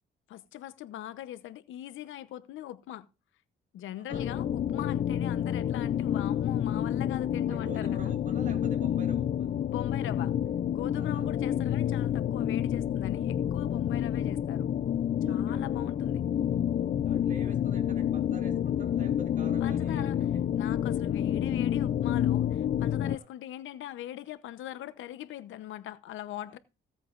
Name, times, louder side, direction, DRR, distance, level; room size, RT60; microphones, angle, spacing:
voice 1, 0.3-3.1 3.7-8.1 9.7-10.3 10.7-14.7 15.3-16.3 19.6-20.2 20.5-26.6, left 12 dB, 80° left, 0.8 m, -41 dB
sound 1, 4.1-23.2, left 10 dB, 45° left, 0.4 m, -29 dB
voice 2, 7.5-9.6 10.9-11.3 15.2-15.6 17.0-20.2 23.0-23.3, right 4 dB, 40° right, 2.9 m, -47 dB
16.5 x 8.2 x 2.5 m
cardioid pair, 90°, 20 cm